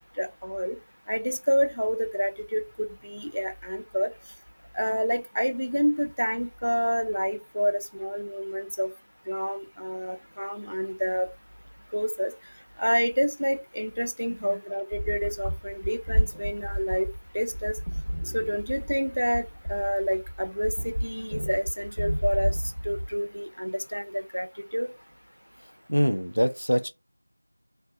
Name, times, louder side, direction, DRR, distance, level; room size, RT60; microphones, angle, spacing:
voice 1, 0.2-0.7 1.1-2.6 3.0-4.1 4.7-8.9 9.3-11.3 11.9-12.3 12.8-17.1 17.3-17.7 18.3-22.5 22.8-24.5 24.7-24.9, equal, 90° right, 0.5 m, -28 dB
sound 1, 14.9-23.2, equal, 50° right, 1.1 m, -31 dB
voice 2, 25.6-26.9, equal, 75° left, 0.5 m, -25 dB
2.5 x 2.3 x 2.3 m
figure-of-eight pair, 180°, 0 cm